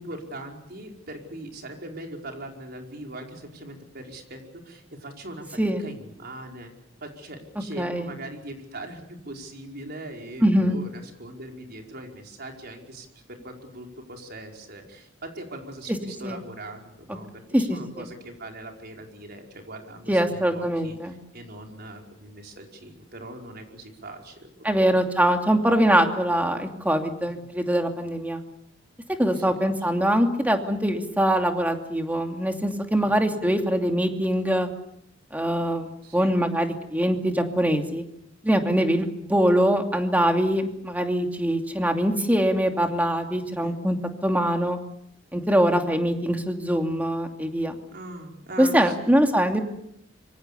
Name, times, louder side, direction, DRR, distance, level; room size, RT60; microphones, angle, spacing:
voice 1, 0.0-6.7 7.0-24.5 24.8-24.9 27.4-27.5 29.3-29.6 33.0-33.2 36.0-36.3 38.7-39.1 43.6-43.8 45.7-45.9 47.9-49.2, right 1 dB, 55° right, 2 dB, 5.1 m, -41 dB
voice 2, 7.8-8.1 10.4-10.8 16.2-16.4 17.5-18.0 20.1-21.1 24.6-28.4 29.2-34.7 35.3-38.0 38.4-44.0 44.2-44.8 45.3-47.8 48.6-49.6, equal, 10° right, 4 dB, 2.6 m, -23 dB
26.5 x 24.5 x 6.9 m, 0.74 s
head